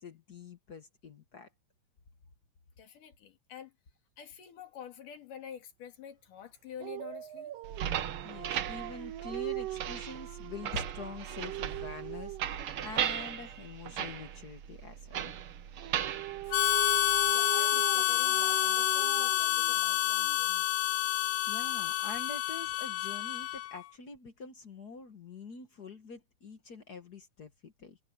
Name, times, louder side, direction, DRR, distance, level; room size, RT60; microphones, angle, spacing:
voice 1, 0.0-1.5 8.2-15.3 21.5-28.0, left 4 dB, 55° left, 1.1 m, -45 dB
voice 2, 2.8-3.7 4.2-7.5 17.3-20.7, left 8 dB, 75° left, 4.1 m, -48 dB
Dog, 6.8-12.6 15.8-20.4, right 16 dB, 90° right, 1.3 m, -41 dB
sound 1, 7.6-17.3, right 9 dB, 60° right, 1.5 m, -37 dB
Harmonica, 16.5-23.8, left 16 dB, 90° left, 1.5 m, -28 dB
omnidirectional pair, 3.8 m